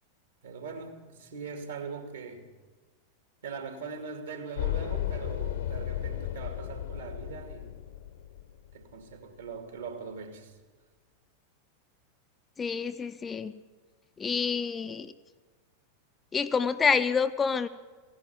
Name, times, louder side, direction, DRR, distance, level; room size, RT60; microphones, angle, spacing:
voice 1, 0.4-2.5 3.4-7.8 8.7-10.6, right 5 dB, 70° right, 5 dB, 2.6 m, -41 dB
sound 1, 4.6-8.8, left 11 dB, 60° left, 1.2 m, -34 dB
voice 2, 12.6-13.5 14.2-15.1 16.3-17.7, left 5 dB, 20° left, 9 dB, 0.6 m, -27 dB
16.5 x 11.0 x 7.4 m, 1.4 s
figure-of-eight pair, 90°, 0 cm